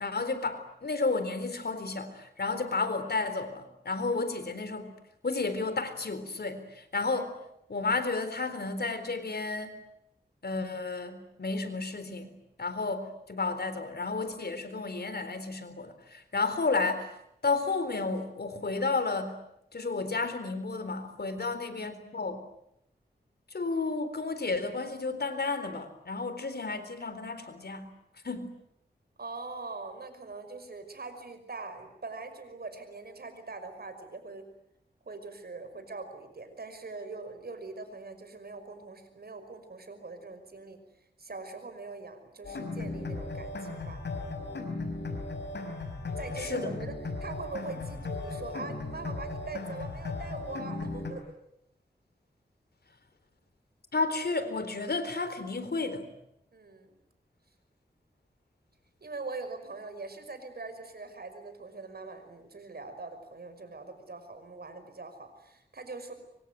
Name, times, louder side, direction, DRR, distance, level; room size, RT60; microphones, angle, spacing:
voice 1, 0.0-4.9 5.2-7.3 7.7-9.8 10.4-17.1 17.4-19.4 19.7-22.4 23.5-27.9 28.2-28.5 46.4-46.8 53.9-56.1, left 3 dB, 65° left, 11 dB, 3.9 m, -32 dB
voice 2, 21.4-21.7 29.2-34.5 35.0-44.0 46.2-51.4 56.5-56.9 59.0-66.1, right 3 dB, 65° right, 8 dB, 5.7 m, -42 dB
sound 1, 42.4-51.1, left 3 dB, 90° left, 5.5 m, -36 dB
25.5 x 25.0 x 9.4 m, 0.77 s
wide cardioid pair, 65°, 18 cm